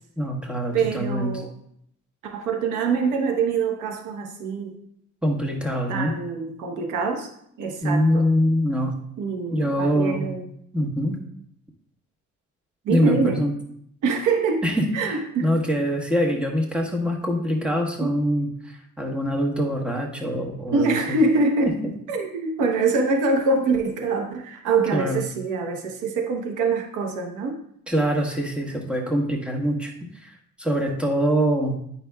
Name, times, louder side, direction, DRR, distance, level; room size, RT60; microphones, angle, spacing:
voice 1, 0.2-1.4 5.2-6.1 7.8-9.0 9.5-10.3 10.7-11.2 12.9-13.6 14.6-21.2 24.9-25.2 27.9-29.9 30.2-31.8, equal, 5° right, 1 dB, 1.2 m, -24 dB
voice 2, 0.7-1.5 2.2-4.7 5.9-7.3 7.6-8.3 9.2-10.5 12.8-13.4 14.0-14.6 14.9-15.5 18.0-18.1 20.7-21.7 22.1-27.6, right 4 dB, 85° right, 3 dB, 1.0 m, -24 dB
9.0 x 5.8 x 2.3 m, 0.70 s
cardioid pair, 90°, 30 cm